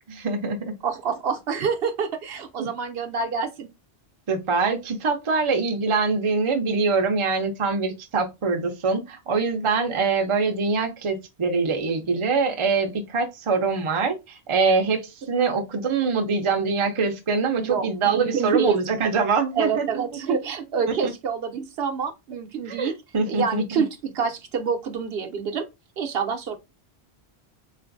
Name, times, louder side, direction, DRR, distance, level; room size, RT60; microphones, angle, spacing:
voice 1, 0.1-0.8 2.6-2.7 4.3-20.0 20.3-20.4 21.0-21.1 22.7-23.8, right 4 dB, 35° right, 0.5 m, -24 dB
voice 2, 0.8-3.7 17.6-18.8 19.6-22.9 23.3-25.7 26.0-26.6, right 6 dB, 70° right, 0.8 m, -27 dB
3.8 x 2.5 x 2.5 m
omnidirectional pair, 1.1 m